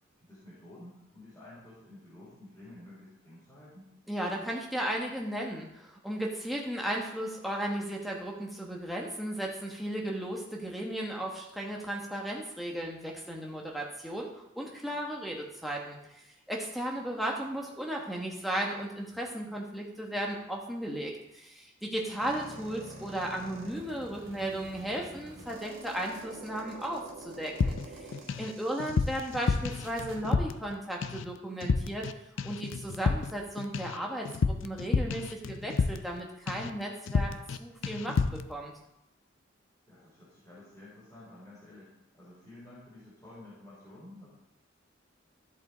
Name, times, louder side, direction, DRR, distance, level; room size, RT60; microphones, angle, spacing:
voice 1, 0.2-3.9 22.0-22.2 39.9-44.3, left 1 dB, 15° left, -9 dB, 3.1 m, -51 dB
voice 2, 4.1-14.3 14.5-28.1 28.4-32.0 32.4-34.3 34.6-37.3 37.6-38.2 38.5-38.7, right 1 dB, ahead, -2 dB, 1.3 m, -35 dB
sound 1, 22.2-30.2, right 2 dB, 75° right, 2.2 m, -47 dB
sound 2, 27.6-28.5 28.8-30.7 31.0-31.3 31.6-32.1 32.4-36.2 36.5-36.8 37.1-37.6 37.8-38.5, left 4 dB, 70° left, 0.4 m, -30 dB
13.0 x 5.4 x 4.0 m, 0.85 s
head